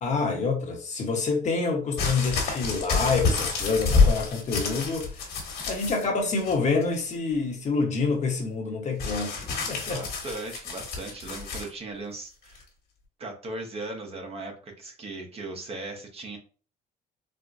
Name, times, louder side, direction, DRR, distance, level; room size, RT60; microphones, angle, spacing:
voice 1, 0.0-5.1 5.7-9.4 9.7-10.0, left 4 dB, 45° left, 1.0 m, -27 dB
sound 1, 2.0-6.0 6.4-6.9 9.0-11.7 12.5-12.6, left 4 dB, 65° left, 1.3 m, -27 dB
voice 2, 9.9-12.6 13.2-16.4, right 2 dB, 35° right, 0.9 m, -38 dB
4.2 x 2.2 x 2.5 m
cardioid pair, 110°, 17 cm